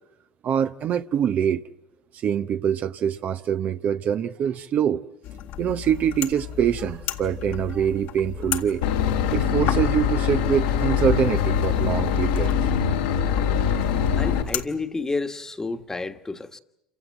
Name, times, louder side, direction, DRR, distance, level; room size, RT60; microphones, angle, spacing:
voice 1, 0.4-1.6 2.2-5.0 5.6-8.8 9.3-12.5 13.7-13.8, right 8 dB, 45° right, 0.8 m, -24 dB
sound 1, 5.2-14.7, left 11 dB, 65° left, 1.8 m, -34 dB
Boat Water vehicle / Engine, 8.8-14.4, left 8 dB, 80° left, 2.4 m, -23 dB
voice 2, 14.2-16.6, left 3 dB, 15° left, 1.5 m, -30 dB
28.0 x 16.5 x 9.0 m
hypercardioid pair, 75°, 4 cm